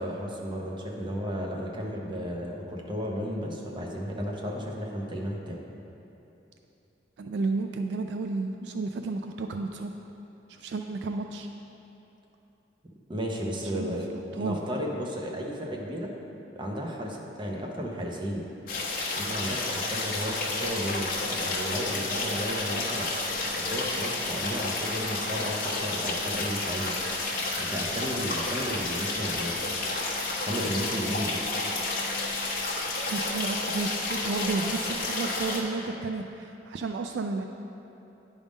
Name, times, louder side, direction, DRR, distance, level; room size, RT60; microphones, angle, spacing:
voice 1, 0.0-5.6 13.1-14.1 14.3-16.1 16.5-18.5 19.2-23.1 23.5-27.0 27.6-29.7 30.4-31.5, equal, 25° right, -1 dB, 0.8 m, -33 dB
voice 2, 7.2-9.9 10.5-11.5 13.8-14.0 14.4-14.6 33.1-37.4, right 3 dB, 70° right, 5 dB, 0.3 m, -32 dB
sound 1, 18.7-35.6, left 2 dB, 50° left, 1.1 m, -31 dB
9.8 x 3.6 x 5.1 m, 2.9 s
head